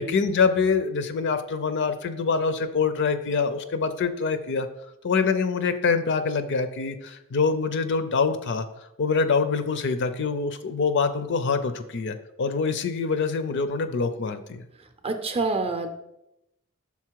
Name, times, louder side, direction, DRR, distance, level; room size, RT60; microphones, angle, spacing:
voice 1, 0.0-4.7 5.0-8.7 9.0-14.6, left 5 dB, 55° left, 10 dB, 0.5 m, -25 dB
voice 2, 14.8-15.9, right 3 dB, 30° right, 7 dB, 0.5 m, -28 dB
5.8 x 4.0 x 4.6 m, 0.85 s
head